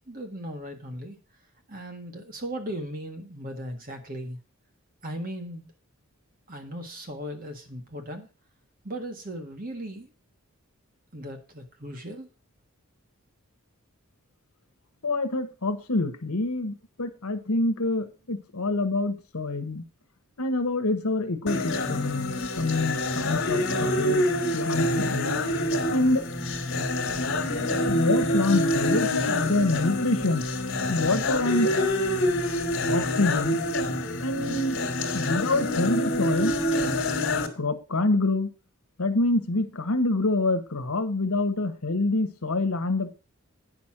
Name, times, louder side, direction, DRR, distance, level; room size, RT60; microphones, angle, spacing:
voice 1, 0.1-1.2 1.7-4.4 5.0-5.7 6.5-8.3 8.8-10.1 11.1-12.3, right 1 dB, 40° right, 5 dB, 1.6 m, -37 dB
voice 2, 15.0-19.8 20.4-24.3 24.5-25.3 25.9-26.2 27.8-30.5 30.9-31.7 32.9-33.6 34.2-34.8 35.1-36.6 37.5-38.5 39.0-43.2, left 2 dB, 75° left, 9 dB, 1.3 m, -26 dB
sound 1, 21.5-37.5, left 1 dB, 55° left, 1.8 m, -26 dB
9.7 x 6.2 x 5.9 m, 0.33 s
head